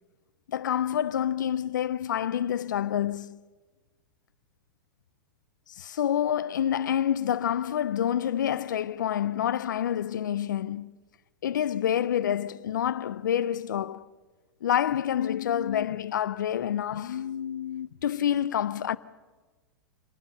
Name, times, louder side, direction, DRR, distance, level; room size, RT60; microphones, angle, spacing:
voice 1, 0.5-3.4 5.7-10.9 11.4-14.1 14.6-19.0, left 10 dB, 75° left, 0.6 m, -28 dB
26.5 x 19.5 x 5.6 m
hypercardioid pair, 100°, 10 cm